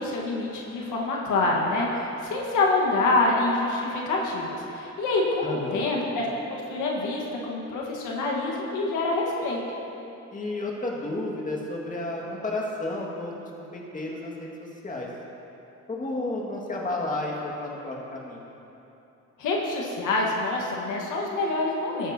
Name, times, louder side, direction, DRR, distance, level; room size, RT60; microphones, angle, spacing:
voice 1, 0.0-6.3 6.7-9.6 19.4-22.1, left 2 dB, 85° left, -2 dB, 1.4 m, -26 dB
voice 2, 5.4-5.9 10.3-15.1 15.9-18.5, left 2 dB, 25° left, -2 dB, 1.8 m, -32 dB
14.0 x 9.2 x 2.8 m, 3.0 s
cardioid pair, 90°, 30 cm